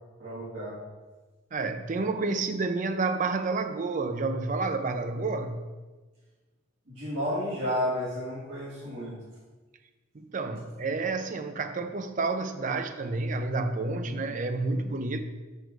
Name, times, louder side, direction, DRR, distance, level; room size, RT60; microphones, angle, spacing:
voice 1, 0.2-0.7 6.9-9.1 14.1-14.2, equal, 60° right, -11 dB, 2.4 m, -32 dB
voice 2, 1.5-5.7 10.1-15.2, right 3 dB, 40° right, 8 dB, 0.5 m, -30 dB
6.4 x 4.5 x 6.6 m, 1.3 s
head